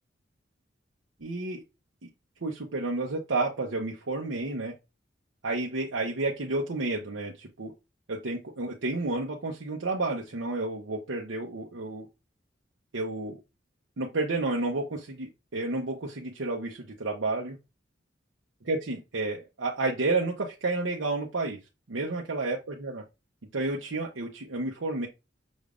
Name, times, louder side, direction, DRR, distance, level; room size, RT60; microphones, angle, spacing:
voice 1, 1.2-1.6 2.0-2.1 2.4-4.7 5.4-7.7 8.1-12.1 12.9-13.4 14.0-17.6 18.6-21.6 21.9-23.0 23.5-25.1, right 2 dB, 80° right, 0.8 m, -31 dB
6.2 x 3.4 x 2.5 m
head